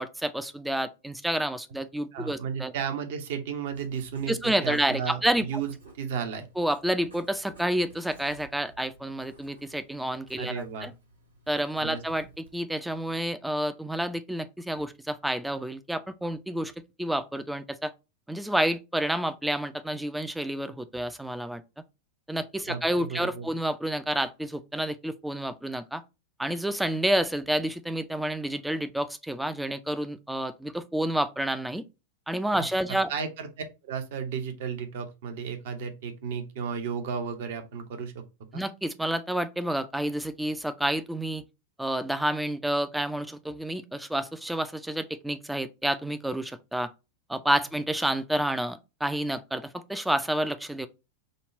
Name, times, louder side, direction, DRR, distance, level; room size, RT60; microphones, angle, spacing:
voice 1, 0.0-2.7 4.3-5.5 6.6-10.9 11.5-12.3 12.5-16.7 17.0-17.9 18.3-21.6 22.3-26.0 26.4-31.8 32.3-33.1 38.5-41.4 41.8-46.9 47.3-50.9, right 1 dB, 5° right, 0.4 m, -29 dB
voice 2, 2.1-6.5 10.4-10.9 11.8-12.0 22.7-23.5 33.1-38.2 38.5-38.6, right 6 dB, 55° right, 0.8 m, -34 dB
Writing, 3.7-13.3, right 2 dB, 80° right, 1.4 m, -54 dB
5.2 x 2.3 x 4.3 m
figure-of-eight pair, 90°, 0 cm